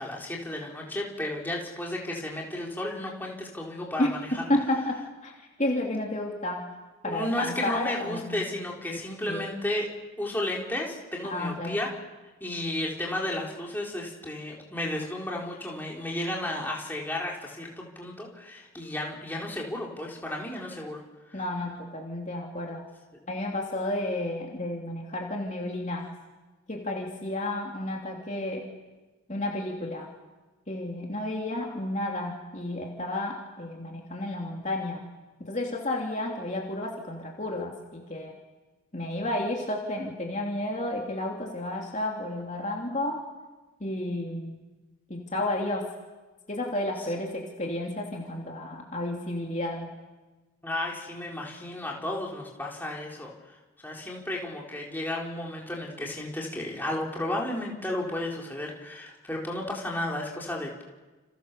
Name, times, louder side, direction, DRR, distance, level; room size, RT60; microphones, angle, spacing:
voice 1, 0.0-4.5 7.0-9.9 10.2-11.9 12.4-21.0 21.3-21.5 47.0-47.1 50.6-53.6 53.8-60.8, left 1 dB, 10° left, -2 dB, 4.3 m, -33 dB
voice 2, 4.5-5.3 5.6-6.7 7.0-8.5 8.9-9.0 9.3-9.4 11.3-11.8 21.3-22.8 23.3-26.1 26.7-28.8 29.3-30.1 30.7-35.0 35.4-38.3 38.9-43.2 43.8-44.6 45.1-45.9 46.5-49.9, left 1 dB, 35° left, 0 dB, 3.1 m, -31 dB
29.5 x 29.0 x 7.0 m, 1.2 s
head